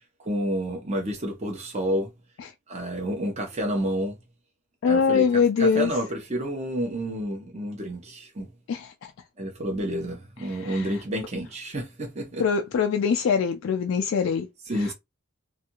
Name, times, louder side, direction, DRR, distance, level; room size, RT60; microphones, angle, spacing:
voice 1, 0.2-2.1 2.7-4.2 4.9-5.2 5.6-8.5 9.4-12.4 14.7-14.9, equal, 30° right, 0.7 m, -29 dB
voice 2, 4.8-5.9 8.7-9.1 10.5-11.0 12.4-14.5 14.7-14.9, left 6 dB, 60° left, 0.3 m, -23 dB
2.6 x 2.4 x 2.8 m
head